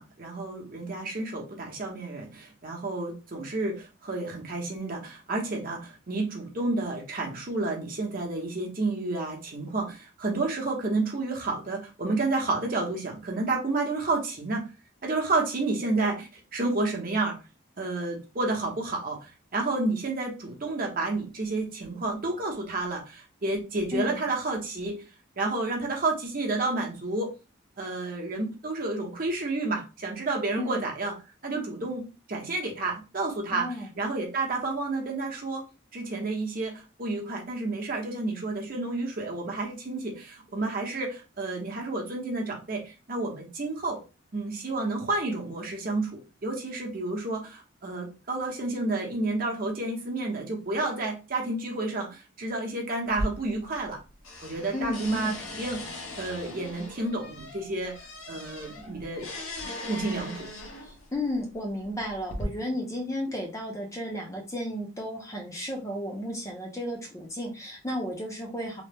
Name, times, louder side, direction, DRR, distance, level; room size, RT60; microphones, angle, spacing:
voice 1, 0.0-14.7 15.0-17.4 17.8-25.1 25.4-27.3 27.8-31.1 31.4-33.7 34.0-35.7 35.9-44.0 44.3-54.0 54.4-57.9 58.3-59.3 59.9-60.5, right 2 dB, 45° right, 0 dB, 0.7 m, -30 dB
voice 2, 23.9-24.2 30.6-30.8 33.5-33.9 54.7-55.4 60.8-68.8, left 1 dB, 15° left, 0 dB, 0.5 m, -33 dB
sound 1, 53.1-54.0 54.2-61.1 61.8-62.4, left 1 dB, 85° left, 0.9 m, -39 dB
2.9 x 2.0 x 3.3 m, 0.30 s
head